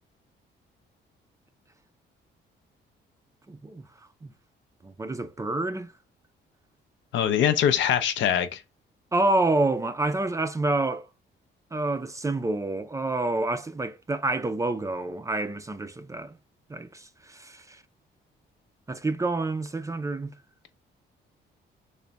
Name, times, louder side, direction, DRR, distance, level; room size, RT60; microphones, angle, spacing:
voice 1, 3.5-4.3 4.8-5.9 9.1-11.1 11.7-16.4 16.7-17.8 18.9-20.3, right 2 dB, 15° right, 0.3 m, -28 dB
voice 2, 7.1-8.6, left 9 dB, 70° left, 0.5 m, -23 dB
3.4 x 2.1 x 3.8 m
cardioid pair, 90°, 20 cm